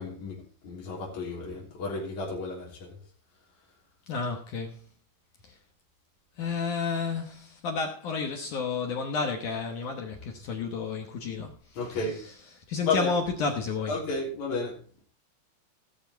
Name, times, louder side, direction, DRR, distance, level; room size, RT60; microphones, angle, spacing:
voice 1, 0.0-3.0 11.8-12.2 12.8-13.1 13.9-14.8, left 3 dB, 45° left, 4.6 m, -32 dB
voice 2, 4.1-4.8 5.4-5.6 6.4-13.9, left 5 dB, 70° left, 2.0 m, -31 dB
17.5 x 6.9 x 4.5 m
omnidirectional pair, 4.9 m